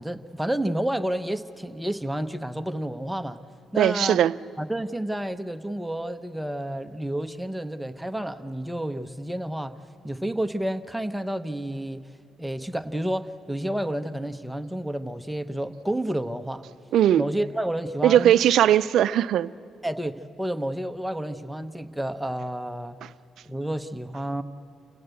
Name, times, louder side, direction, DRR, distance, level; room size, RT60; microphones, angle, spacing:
voice 1, 0.0-3.4 3.7-4.2 4.6-9.7 10.0-12.1 12.4-16.6 17.1-18.3 19.8-23.0 23.5-24.4, right 1 dB, 5° right, 0.9 m, -30 dB
voice 2, 3.8-4.4 16.9-17.2 18.0-19.5, right 11 dB, 75° right, 0.5 m, -19 dB
29.0 x 17.0 x 8.1 m
cardioid pair, 90°, 0 cm